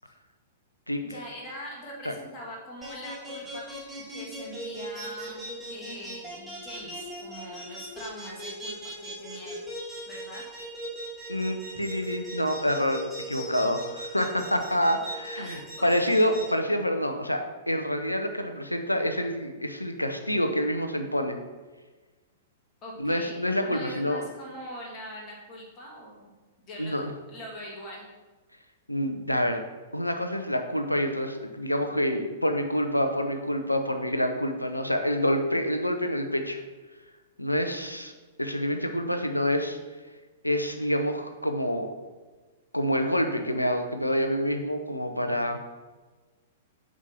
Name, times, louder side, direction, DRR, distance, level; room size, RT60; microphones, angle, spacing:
voice 1, 1.0-9.6 10.1-10.4 15.4-16.3 22.8-26.3 26.6-28.1, equal, 30° left, -2 dB, 2.0 m, -42 dB
sound 1, 2.8-16.4, right 1 dB, 5° right, 2.3 m, -39 dB
voice 2, 11.3-21.4 23.0-24.2 26.8-27.1 28.9-29.6 29.9-36.6 37.4-38.1 38.4-39.8 40.4-41.9 42.7-45.6, equal, 90° left, 6 dB, 0.7 m, -27 dB
8.1 x 6.3 x 2.9 m, 1.3 s
figure-of-eight pair, 105°, 0 cm